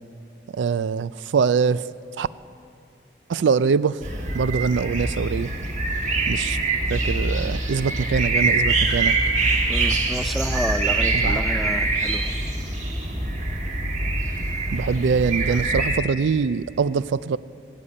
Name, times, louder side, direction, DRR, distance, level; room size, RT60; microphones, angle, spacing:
voice 1, 0.5-1.9 2.2-2.3 3.3-4.0 4.3-5.5 6.3-6.6 6.9-9.1 11.1-11.4 14.7-17.4, right 5 dB, 90° right, 17 dB, 0.4 m, -23 dB
sound 1, 4.0-16.0, right 2 dB, 40° right, 1.4 m, -24 dB
voice 2, 9.7-12.3 15.5-15.6, equal, ahead, 10 dB, 0.4 m, -30 dB
19.5 x 8.4 x 8.6 m, 2.5 s
head